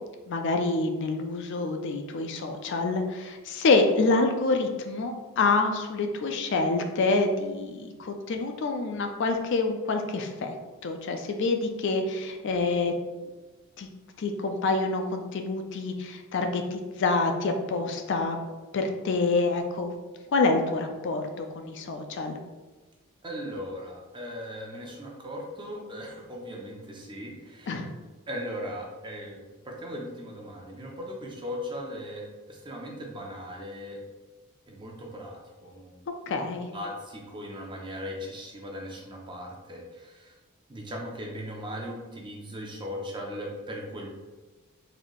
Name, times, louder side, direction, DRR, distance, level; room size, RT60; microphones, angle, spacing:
voice 1, 0.3-10.6 10.8-12.9 13.8-13.9 14.2-18.4 18.7-20.0 20.3-22.4 27.7-27.9 36.3-36.7, left 3 dB, 55° left, 5 dB, 0.4 m, -27 dB
voice 2, 23.2-27.7 28.3-29.4 29.6-34.0 34.7-36.0 36.7-40.3 40.7-44.1, equal, 20° right, -1 dB, 0.6 m, -38 dB
4.0 x 2.7 x 3.0 m, 1.3 s
head